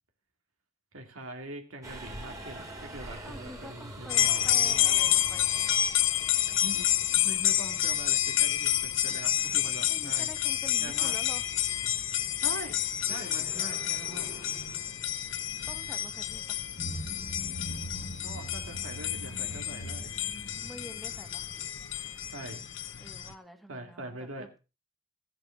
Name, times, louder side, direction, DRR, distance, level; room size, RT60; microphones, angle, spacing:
voice 1, 0.9-5.2 6.6-6.9 7.1-10.3 10.8-11.2 12.4-12.8 13.1-14.3 18.2-20.1 22.3-22.7 23.7-24.5, right 2 dB, 85° right, 4 dB, 2.4 m, -43 dB
Subway metro underground, 1.8-21.7, right 1 dB, 15° right, 2.7 m, -49 dB
voice 2, 3.2-5.7 9.7-11.5 15.7-16.6 20.6-21.5 23.0-24.6, equal, ahead, 6 dB, 1.6 m, -47 dB
sound 1, 4.1-23.3, left 12 dB, 65° left, 0.9 m, -29 dB
sound 2, 16.8-22.3, equal, 40° left, 1.4 m, -42 dB
15.5 x 8.8 x 4.6 m, 0.31 s
head